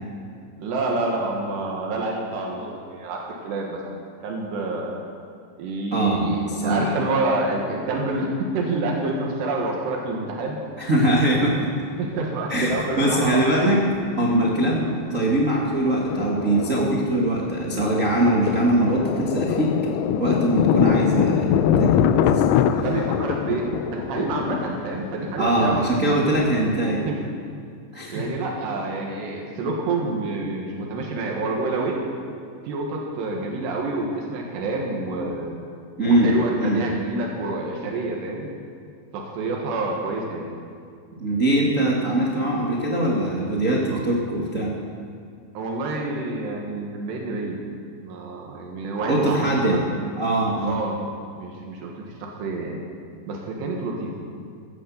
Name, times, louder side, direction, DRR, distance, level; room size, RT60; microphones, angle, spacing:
voice 1, 0.6-4.0 4.2-5.0 5.6-10.6 12.0-13.5 22.7-25.9 27.1-27.2 28.1-32.0 32.7-35.7 36.1-38.5 39.1-40.5 43.9-44.0 45.6-47.6 48.0-49.9 50.6-51.0 51.4-52.8 53.3-54.1, right 2 dB, 85° right, -1 dB, 3.9 m, -28 dB
voice 2, 5.9-6.9 10.8-11.6 12.5-13.8 14.2-19.7 20.1-22.4 25.4-27.0 27.9-28.2 36.0-36.8 41.2-44.7 49.0-49.8 50.2-50.7, right 1 dB, 55° right, -3 dB, 0.8 m, -22 dB
Thunder, 11.2-11.3 12.6-13.4 13.7-13.8 14.2-14.5 14.8-27.2, left 9 dB, 80° left, 2.6 m, -24 dB
16.5 x 11.0 x 7.1 m, 2.4 s
omnidirectional pair, 4.7 m